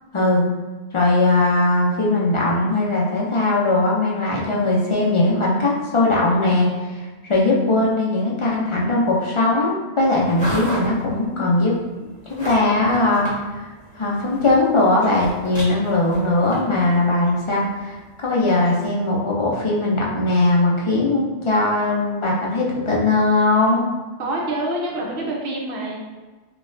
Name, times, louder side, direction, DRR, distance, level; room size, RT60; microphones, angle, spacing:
voice 1, 0.1-0.4 0.9-11.7 12.3-13.3 13.5-13.7 13.9-23.8, left 2 dB, 50° left, -4 dB, 0.3 m, -19 dB
sound 1, 10.0-18.9, equal, 10° left, 0.9 m, -36 dB
voice 2, 24.2-26.0, right 1 dB, 60° right, -1 dB, 0.9 m, -26 dB
4.0 x 2.2 x 2.5 m, 1.3 s
omnidirectional pair, 1.1 m